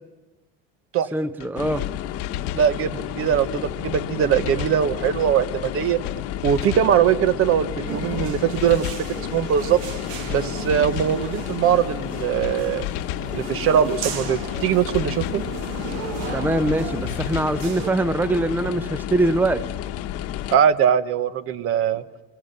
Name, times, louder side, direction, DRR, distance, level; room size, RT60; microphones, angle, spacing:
voice 1, 1.1-1.9 16.3-19.7, right 2 dB, 5° right, 12 dB, 0.8 m, -23 dB
sound 1, 1.4-1.5 1.8-1.9 2.2-2.7 3.5-3.6 3.9-4.1 4.3-4.8 5.6-5.7 6.0-6.2 6.4-6.9 7.8-7.9 8.2-8.3 8.6-9.1 9.9-10.0 10.3-10.4 10.7-11.2 12.0-12.1 12.4-12.5 12.8-13.3 14.1-14.2 14.5-14.7 14.9-15.4 16.3-16.4 16.7-16.8 17.1-17.6, left 14 dB, 70° left, 1.3 m, -32 dB
sound 2, 1.6-20.6, left 11 dB, 50° left, 1.3 m, -31 dB
voice 2, 2.5-6.0 6.4-9.8 10.3-12.9 13.3-15.4 20.5-22.0, right 9 dB, 45° right, 12 dB, 1.3 m, -21 dB
sound 3, 7.9-17.9, right 8 dB, 75° right, 2.2 m, -36 dB
28.5 x 22.0 x 6.9 m, 1.2 s
supercardioid pair, 115°, 31 cm